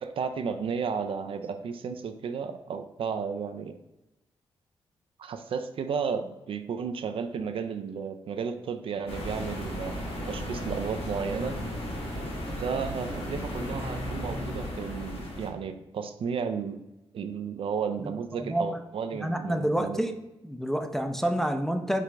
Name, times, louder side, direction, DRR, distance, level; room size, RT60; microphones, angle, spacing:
voice 1, 0.0-3.8 5.2-10.0 10.3-11.6 12.6-16.8 17.1-20.0, right 6 dB, 65° right, 8 dB, 0.4 m, -33 dB
sound 1, 9.1-15.5, equal, 70° left, 1.3 m, -35 dB
voice 2, 18.0-18.8 19.2-20.1 20.4-22.0, equal, 5° left, 5 dB, 0.4 m, -28 dB
4.8 x 2.5 x 3.3 m, 0.96 s
cardioid pair, 70°, 10 cm